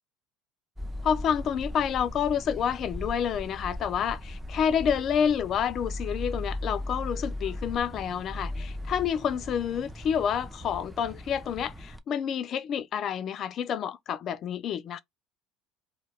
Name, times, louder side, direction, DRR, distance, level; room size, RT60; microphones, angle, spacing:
sound 1, 0.8-12.0, left 1 dB, 10° right, 0.4 m, -38 dB
voice 1, 1.0-15.0, left 8 dB, 50° left, 0.3 m, -29 dB
2.2 x 2.2 x 3.1 m
hypercardioid pair, 85°, 0 cm